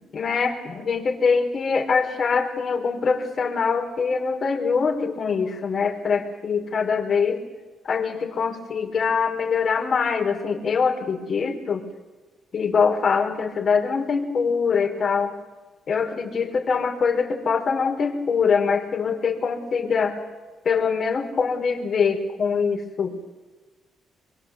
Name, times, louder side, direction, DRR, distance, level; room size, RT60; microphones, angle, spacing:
voice 1, 0.1-7.4 7.9-11.8 12.5-15.3 15.9-20.2 20.6-23.3, left 5 dB, 50° left, 4 dB, 4.5 m, -23 dB
25.0 x 22.5 x 8.0 m, 1.2 s
cardioid pair, 90°, 0 cm